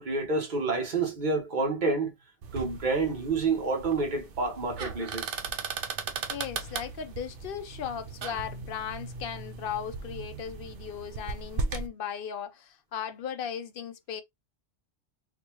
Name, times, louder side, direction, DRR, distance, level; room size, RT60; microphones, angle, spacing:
voice 1, 0.0-2.1 2.5-5.3, right 3 dB, 45° right, 1.3 m, -28 dB
sound 1, 2.4-11.9, right 4 dB, 60° right, 0.7 m, -37 dB
voice 2, 6.3-14.2, left 8 dB, 60° left, 0.7 m, -37 dB
4.1 x 2.2 x 2.9 m
omnidirectional pair, 1.2 m